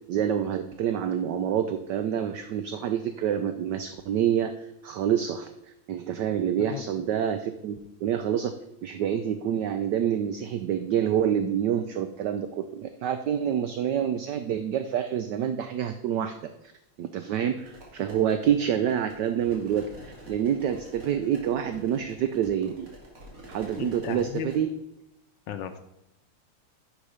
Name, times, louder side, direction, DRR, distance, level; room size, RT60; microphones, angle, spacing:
voice 1, 0.1-4.5 4.8-5.5 5.9-8.5 8.8-16.3 16.6-16.7 17.0-22.9 23.5-24.7, right 9 dB, 70° right, 9 dB, 1.0 m, -27 dB
sound 1, 17.6-24.6, right 1 dB, 40° right, 2.5 m, -48 dB
voice 2, 23.8-24.5 25.5-25.8, left 10 dB, 70° left, 9 dB, 1.2 m, -35 dB
9.8 x 6.1 x 5.0 m, 0.87 s
omnidirectional pair, 2.3 m